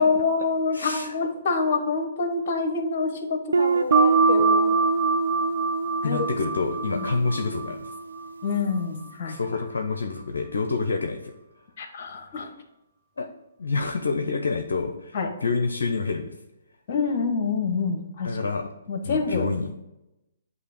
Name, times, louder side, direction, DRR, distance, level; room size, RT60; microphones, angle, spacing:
voice 1, 0.0-4.8 6.0-6.3 6.9-7.1 8.4-9.4 11.8-12.5 15.1-15.3 16.9-18.3 18.9-19.5, left 4 dB, 50° left, 6 dB, 1.2 m, -26 dB
voice 2, 0.7-1.1 6.0-7.9 9.3-11.3 13.2-13.3 13.6-16.3 18.2-18.6 19.0-19.7, left 4 dB, 75° left, 6 dB, 0.6 m, -28 dB
Guitar, 3.5-8.2, right 4 dB, 80° right, 0.3 m, -24 dB
sound 1, 3.9-9.1, right 3 dB, 25° right, 0.6 m, -27 dB
8.1 x 2.8 x 5.1 m, 0.94 s
hypercardioid pair, 135°, 0 cm